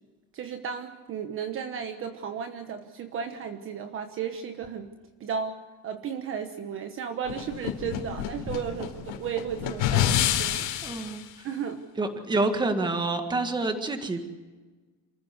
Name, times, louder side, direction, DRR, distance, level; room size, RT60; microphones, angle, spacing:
voice 1, 0.3-4.9 5.2-10.7 11.4-11.8, right 7 dB, 35° right, 7 dB, 1.2 m, -34 dB
sound 1, 7.3-11.2, left 11 dB, 70° left, 3.7 m, -28 dB
voice 2, 10.8-11.2 12.0-14.3, right 2 dB, 10° right, 7 dB, 1.7 m, -27 dB
28.0 x 15.5 x 8.0 m, 1.3 s
cardioid pair, 175°, 39 cm